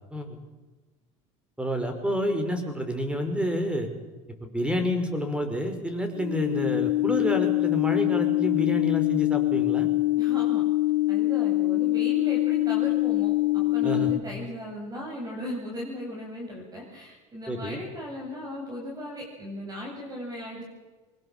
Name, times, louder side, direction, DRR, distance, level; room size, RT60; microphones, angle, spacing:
voice 1, 1.6-3.9 4.4-9.9 13.8-14.1 17.5-17.8, equal, 5° right, 6 dB, 5.5 m, -29 dB
sound 1, 6.1-14.2, left 18 dB, 80° left, 1.1 m, -24 dB
voice 2, 10.2-10.6 11.1-20.7, equal, 25° right, -1 dB, 7.9 m, -37 dB
24.5 x 20.5 x 7.5 m, 1.2 s
supercardioid pair, 105°, 16 cm